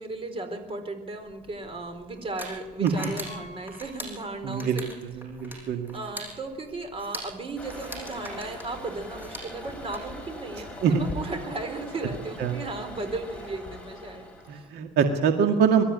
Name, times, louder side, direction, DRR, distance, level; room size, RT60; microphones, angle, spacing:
voice 1, 0.0-4.9 5.5-14.6, right 2 dB, 35° right, 7 dB, 4.1 m, -36 dB
sound 1, 1.3-10.0, right 1 dB, 10° right, 6.3 m, -42 dB
Piano, 3.3-4.9 5.1-5.3 5.9-6.0 6.2-6.3 8.4-8.5, left 1 dB, 35° left, 6.3 m, -50 dB
voice 2, 4.4-4.8 5.1-6.0 10.8-11.1 12.4-12.6 14.5-15.8, right 6 dB, 75° right, 5 dB, 2.1 m, -24 dB
Toilet flush, 7.6-14.7, left 1 dB, 5° left, 7.2 m, -41 dB
23.5 x 13.0 x 9.6 m, 1.2 s
cardioid pair, 110°, 17 cm